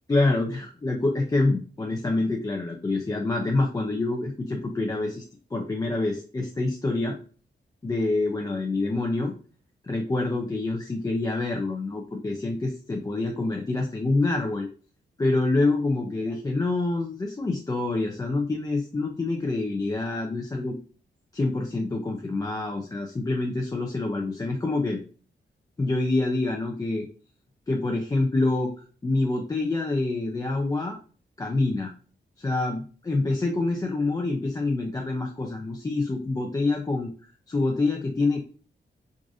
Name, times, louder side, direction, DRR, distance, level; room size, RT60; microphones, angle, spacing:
voice 1, 0.1-5.2 5.5-7.2 7.8-9.3 9.8-14.7 15.2-20.8 21.3-25.0 25.8-27.1 27.7-28.7 29.0-31.0 31.4-31.9 32.4-37.1 37.5-38.4, left 2 dB, 20° left, 1 dB, 0.4 m, -26 dB
4.7 x 2.5 x 2.6 m, 0.39 s
wide cardioid pair, 170°, 19 cm